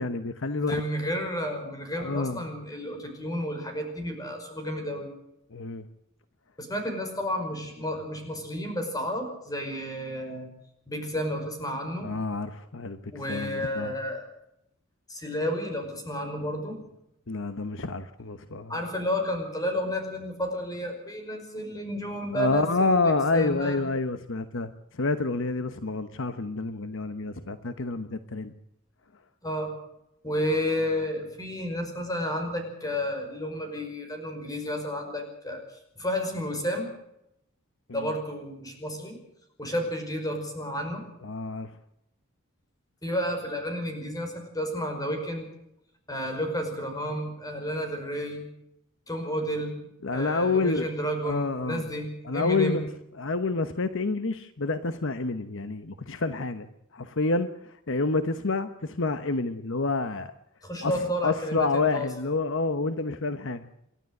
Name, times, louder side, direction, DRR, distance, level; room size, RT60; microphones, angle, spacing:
voice 1, 0.0-0.8 2.0-2.4 5.5-5.8 12.0-13.9 17.3-18.8 22.3-28.5 37.9-38.1 41.2-41.7 50.0-50.9 51.2-51.8 52.2-52.9 53.2-56.7 56.9-57.5 57.9-60.3 60.8-60.9 61.2-63.7, left 3 dB, 65° left, 10 dB, 1.1 m, -28 dB
voice 2, 0.6-5.1 6.6-10.5 10.9-12.1 13.1-14.3 15.1-16.8 18.7-23.8 29.4-29.7 30.2-35.6 36.0-36.9 37.9-39.2 39.6-41.0 43.0-45.5 46.1-48.4 49.1-52.8 60.6-62.1, equal, 20° left, 4 dB, 5.4 m, -31 dB
28.5 x 12.5 x 7.9 m, 0.81 s
head